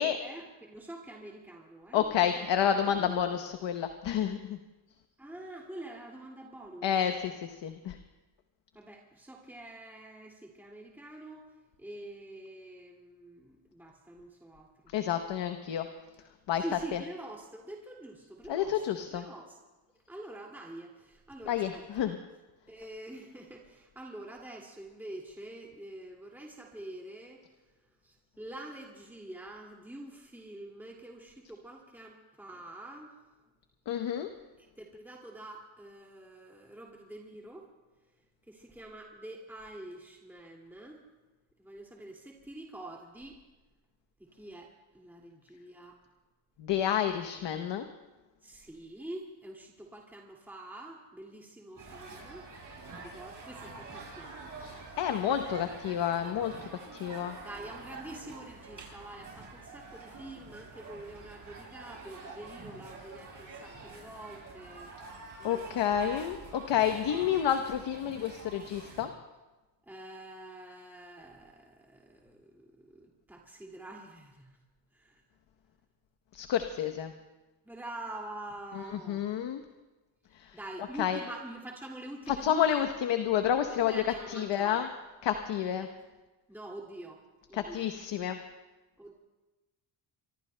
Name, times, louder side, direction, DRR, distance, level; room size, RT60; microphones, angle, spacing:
voice 1, 0.0-2.2 2.6-3.2 5.2-7.3 8.7-11.5 11.8-14.7 16.6-19.6 20.1-22.2 22.7-27.4 28.0-33.1 34.8-37.7 38.5-41.0 41.6-43.4 44.2-46.0 48.4-52.5 53.0-55.3 57.4-64.9 65.4-66.3 69.9-74.6 74.9-75.2 77.6-79.3 80.5-82.8 83.7-84.9 85.8-85.9 86.5-87.2 87.5-87.9 89.0-89.1, right 1 dB, 5° right, -1 dB, 2.2 m, -46 dB
voice 2, 1.9-4.6 6.8-8.0 14.9-15.9 16.5-16.6 16.9-17.0 18.5-19.2 21.5-22.2 33.9-34.3 46.6-47.9 54.6-57.4 65.4-69.1 76.3-77.1 78.7-79.6 80.3-80.6 81.0-81.2 82.3-84.0 84.3-84.9 85.2-85.9 87.5-88.4, left 9 dB, 60° left, 7 dB, 1.0 m, -30 dB
sound 1, 51.8-69.0, right 3 dB, 40° right, 7.2 m, -47 dB
24.5 x 23.0 x 2.2 m, 1.1 s
cardioid pair, 80°, 49 cm